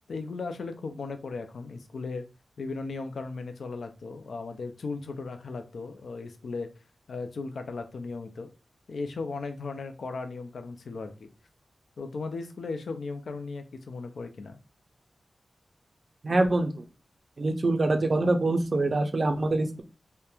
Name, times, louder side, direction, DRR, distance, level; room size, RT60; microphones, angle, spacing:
voice 1, 0.1-2.2 2.6-6.7 7.1-8.5 8.9-11.3 12.0-14.6, left 4 dB, 80° left, 7 dB, 0.3 m, -36 dB
voice 2, 16.2-16.8 17.4-19.8, right 2 dB, 55° right, 5 dB, 0.4 m, -25 dB
2.9 x 2.1 x 2.2 m, 0.32 s
cardioid pair, 45°, 0 cm